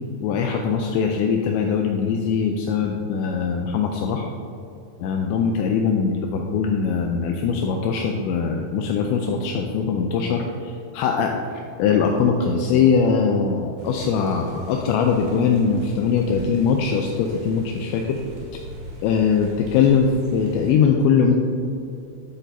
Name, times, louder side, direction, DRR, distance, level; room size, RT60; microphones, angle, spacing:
voice 1, 0.2-4.3 5.0-18.2 19.0-21.3, left 6 dB, 85° left, 2 dB, 2.6 m, -21 dB
sound 1, 13.8-20.7, right 1 dB, 85° right, 4.5 m, -42 dB
11.0 x 8.2 x 2.6 m, 2.7 s
omnidirectional pair, 5.5 m